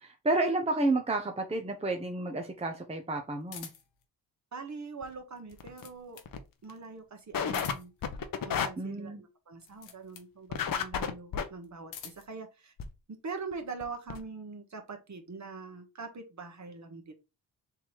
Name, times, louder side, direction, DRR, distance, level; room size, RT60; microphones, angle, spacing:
voice 1, 0.0-3.7 8.8-9.2, right 2 dB, 15° right, 0.9 m, -31 dB
sound 1, 3.5-4.0 5.3-6.4 7.4-8.1 9.5-10.3 11.6-12.4, left 9 dB, 85° left, 0.9 m, -47 dB
voice 2, 4.5-6.2 6.6-7.9 8.4-12.7 13.1-17.1, right 4 dB, 40° right, 1.3 m, -43 dB
sound 2, 5.0-5.1 5.5-5.8 6.3-6.4 6.7-6.8 7.3-7.7 8.0-8.7 10.5-11.4 12.8-12.9 13.5-13.6 13.8-13.9 14.1-14.2, left 7 dB, 50° left, 0.9 m, -31 dB
3.6 x 2.8 x 4.6 m
supercardioid pair, 50°, 44 cm